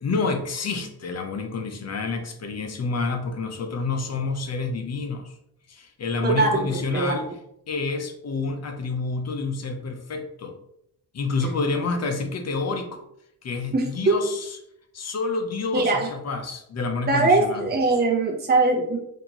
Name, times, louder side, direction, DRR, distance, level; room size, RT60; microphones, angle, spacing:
voice 1, 0.0-5.3 5.7-7.3 7.7-10.6 11.1-13.0 13.4-14.6 14.9-17.7, left 3 dB, 45° left, 6 dB, 0.6 m, -28 dB
voice 2, 13.7-14.1 15.7-16.0 17.1-19.0, right 3 dB, 25° right, 0 dB, 0.7 m, -21 dB
4.3 x 2.7 x 2.8 m, 0.75 s
wide cardioid pair, 115°, 36 cm